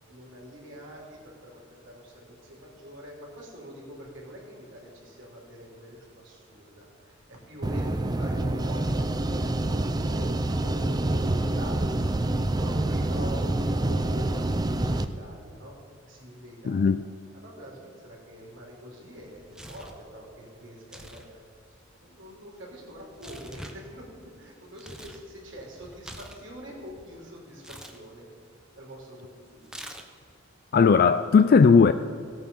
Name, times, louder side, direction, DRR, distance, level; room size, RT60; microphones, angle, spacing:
voice 1, 0.1-7.2 7.5-12.2 12.6-15.7 16.0-16.9 17.4-21.4 22.0-28.3 28.8-29.7, equal, 70° right, 3.2 m, -44 dB
sound 1, 7.6-15.1, right 1 dB, 20° right, 0.5 m, -27 dB
voice 2, 16.6-17.0 30.7-31.9, left 5 dB, 50° left, 0.3 m, -17 dB
Tearing, 19.2-20.0 20.8-21.3 21.5-25.2 25.6-27.1 27.6-28.0 29.6-30.3, equal, 5° right, 0.9 m, -45 dB
16.0 x 8.7 x 5.5 m
head